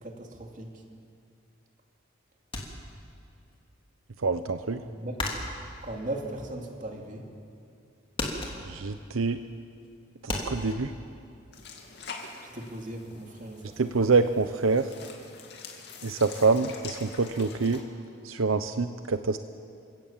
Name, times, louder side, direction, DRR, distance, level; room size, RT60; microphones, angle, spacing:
sound 1, 2.5-3.6 3.9-7.1 7.5-7.9 8.1-10.8, left 2 dB, 25° left, 2.9 m, -35 dB
voice 1, 4.2-4.8 8.7-9.4 10.5-10.9 13.8-14.8 16.0-17.8 18.2-19.4, right 4 dB, 85° right, 10 dB, 0.7 m, -25 dB
voice 2, 4.9-5.2 5.8-7.3 12.5-13.7, right 1 dB, 40° right, 2 dB, 2.6 m, -37 dB
sound 2, 11.5-17.8, left 4 dB, 55° left, 2.6 m, -45 dB
29.0 x 17.0 x 7.3 m, 2.5 s
head